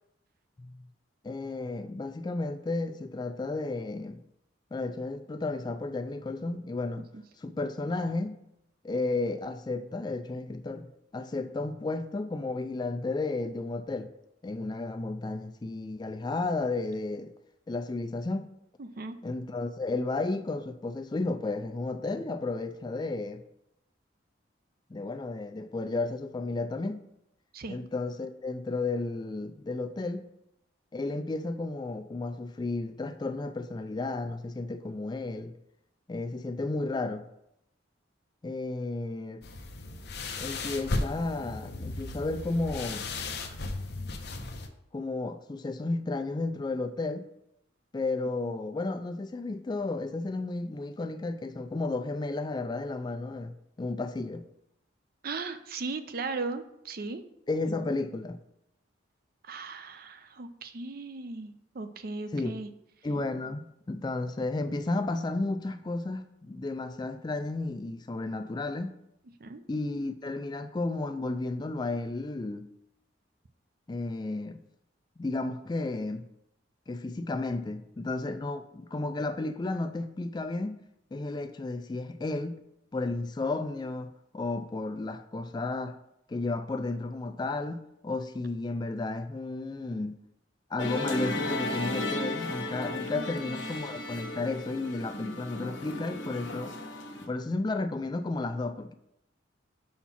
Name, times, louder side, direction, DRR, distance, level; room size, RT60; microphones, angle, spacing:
voice 1, 1.2-4.2 4.7-7.1 7.4-8.4 8.8-10.9 11.1-14.1 14.4-17.3 17.7-18.5 19.2-23.4 24.9-27.0 27.7-30.2 30.9-35.5 36.1-37.2 38.4-39.4 40.4-43.0 44.9-47.3 47.9-54.4 57.5-58.4 62.3-62.6 63.0-69.0 69.7-72.7 73.9-74.6 75.2-76.3 76.9-80.8 81.1-82.6 82.9-86.0 86.3-90.1 90.7-96.8 97.2-98.9, left 2 dB, 20° left, 0.3 m, -33 dB
voice 2, 18.8-19.1 27.5-27.8 55.2-57.2 59.5-62.7 69.4-69.6 93.2-93.4, right 3 dB, 50° right, 0.5 m, -37 dB
sound 1, 39.4-44.7, left 2 dB, 55° left, 0.7 m, -35 dB
Musical instrument, 90.8-97.3, left 2 dB, 75° left, 1.0 m, -35 dB
5.7 x 4.3 x 5.7 m
head